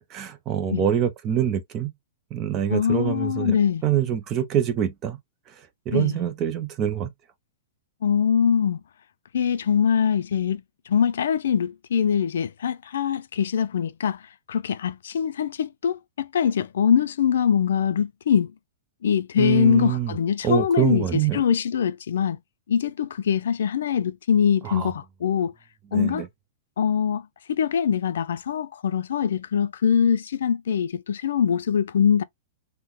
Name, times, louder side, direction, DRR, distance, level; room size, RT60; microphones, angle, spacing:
voice 1, 0.1-1.9 2.3-5.2 5.5-7.1 19.4-20.1 20.4-21.4 24.6-24.9 25.9-26.3, right 9 dB, 20° right, 0.4 m, -25 dB
voice 2, 2.7-3.8 5.9-6.2 8.0-8.8 9.3-14.2 14.5-18.5 19.0-21.1 21.3-22.4 22.7-25.5 25.9-26.2 26.8-32.2, left 7 dB, 75° left, 0.3 m, -23 dB
3.7 x 2.1 x 2.9 m
supercardioid pair, 180°, 0 cm